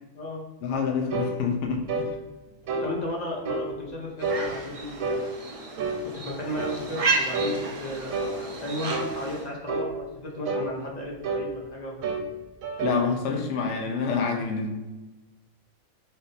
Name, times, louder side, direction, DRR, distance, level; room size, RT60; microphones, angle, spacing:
voice 1, 0.6-2.1 12.8-14.7, left 5 dB, 65° left, 1 dB, 0.9 m, -27 dB
sound 1, 1.1-1.4 1.9-2.1 2.7-2.9 3.4-3.7 4.2-4.5 5.0-5.2 5.8-6.0 6.6-6.8 7.3-7.6 8.1-8.4 8.9-9.1 9.7-9.9 10.4-10.7 11.2-11.5 12.0-12.3 12.6-13.0, right 3 dB, 75° right, 1.1 m, -29 dB
voice 2, 2.7-5.3 5.6-11.9, left 1 dB, 40° left, -2 dB, 0.7 m, -35 dB
sound 2, 4.2-9.5, right 3 dB, 60° right, 0.3 m, -32 dB
3.7 x 2.6 x 3.9 m, 1.1 s
omnidirectional pair, 1.4 m